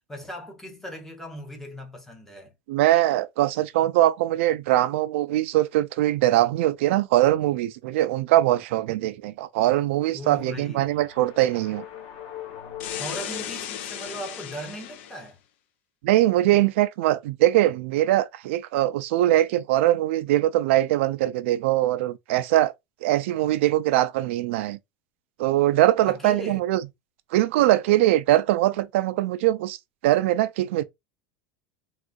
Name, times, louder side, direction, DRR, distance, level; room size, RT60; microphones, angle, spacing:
voice 1, 0.1-2.5 10.1-11.0 13.0-15.4 26.0-26.6, equal, 5° left, 0.7 m, -38 dB
voice 2, 2.7-11.8 16.0-22.7 23.0-24.8 25.4-26.8 27.3-29.8 30.0-30.8, right 14 dB, 70° right, 0.3 m, -22 dB
sound 1, 10.2-14.6, left 11 dB, 40° left, 1.1 m, -42 dB
sound 2, 12.8-15.3, left 10 dB, 65° left, 0.6 m, -36 dB
3.7 x 2.3 x 2.5 m
supercardioid pair, 175°, 7 cm